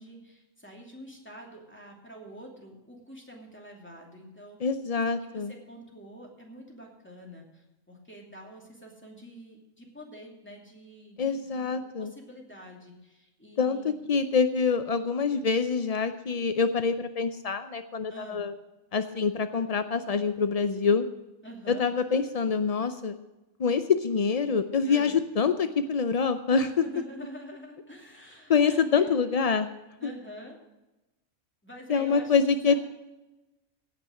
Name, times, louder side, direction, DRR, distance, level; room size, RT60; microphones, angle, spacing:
voice 1, 0.0-13.9 18.1-18.4 21.4-21.9 24.8-25.2 26.5-29.2 30.0-30.6 31.6-32.4 32.7-32.8, equal, 10° left, -1 dB, 2.6 m, -46 dB
voice 2, 4.6-5.5 11.2-12.1 13.6-18.5 18.9-21.1 21.7-23.2 23.6-26.7 28.5-29.7 31.9-32.7, left 5 dB, 65° left, 10 dB, 0.3 m, -25 dB
17.0 x 6.0 x 7.7 m, 1.0 s
omnidirectional pair, 1.4 m